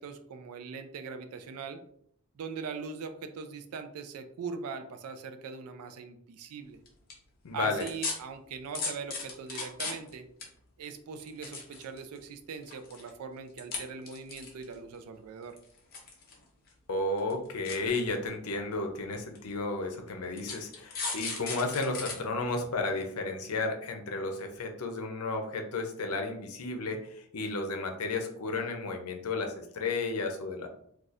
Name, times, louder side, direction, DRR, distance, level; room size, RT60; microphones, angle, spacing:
voice 1, 0.0-1.8 2.4-6.8 7.5-10.3 10.8-15.6, right 5 dB, 85° right, 8 dB, 0.4 m, -41 dB
sound 1, 6.9-7.1 7.8-8.1 8.7-10.1 10.4-10.5 11.2-12.2 12.6-13.1 13.6-13.8 14.1-14.7 15.6-16.4 16.7-16.8 17.2-17.3 17.7-17.8 18.6-18.7 19.4-19.5 20.4-22.1 22.6-22.7, left 4 dB, 40° left, 0.7 m, -35 dB
voice 2, 7.4-7.8 16.9-30.7, left 3 dB, 85° left, 4 dB, 0.6 m, -33 dB
4.0 x 2.4 x 2.4 m, 0.68 s
head